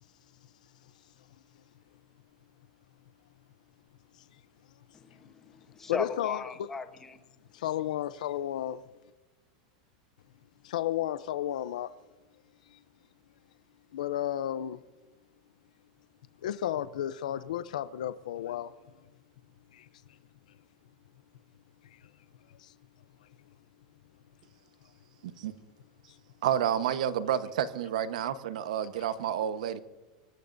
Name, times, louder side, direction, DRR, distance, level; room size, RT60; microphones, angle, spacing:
voice 1, 4.9-7.2, left 4 dB, 10° left, 1.0 m, -38 dB
voice 2, 5.9-6.7 7.5-8.8 10.6-11.9 12.7-12.8 13.9-14.8 16.4-18.7 19.7-19.9 21.8-22.0 22.6-22.7 26.1-26.2 29.0-29.1, left 11 dB, 90° left, 0.6 m, -33 dB
voice 3, 26.4-29.8, right 9 dB, 80° right, 1.1 m, -30 dB
25.0 x 19.0 x 2.7 m
supercardioid pair, 175°, 4 cm